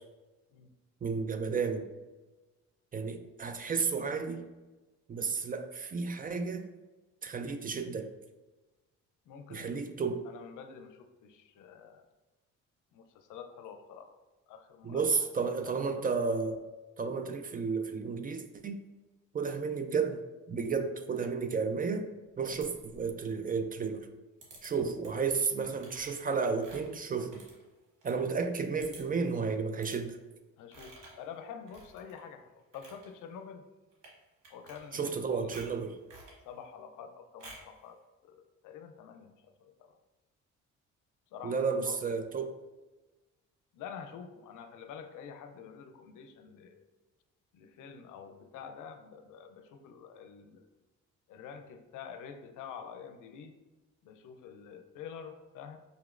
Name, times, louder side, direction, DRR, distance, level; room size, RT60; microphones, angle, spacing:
voice 1, 1.0-1.9 2.9-4.5 5.1-6.7 7.2-8.1 9.5-10.3 14.8-16.6 17.0-18.8 19.3-22.1 22.4-24.1 24.6-27.4 28.0-30.2 34.9-36.0 41.4-42.6, right 5 dB, 30° right, 8 dB, 0.4 m, -32 dB
voice 2, 9.3-9.9 10.3-12.0 12.9-14.2 14.5-15.3 15.6-16.0 30.6-33.7 34.5-35.5 36.4-39.9 41.3-42.0 43.7-46.8 47.5-50.7 51.3-53.5 54.0-55.8, left 7 dB, 85° left, 7 dB, 0.5 m, -48 dB
sound 1, 22.5-23.2 24.4-24.7 25.0-25.3 25.8-28.2 28.5-28.6 28.8-29.2 29.8-30.0 30.7-31.2 31.7-32.2 32.6-33.1 33.9-34.2 34.4-35.2 35.5-36.4 37.4-37.8, right 2 dB, 90° right, 1.3 m, -52 dB
5.2 x 2.9 x 2.4 m, 1.2 s
cardioid pair, 90°, 30 cm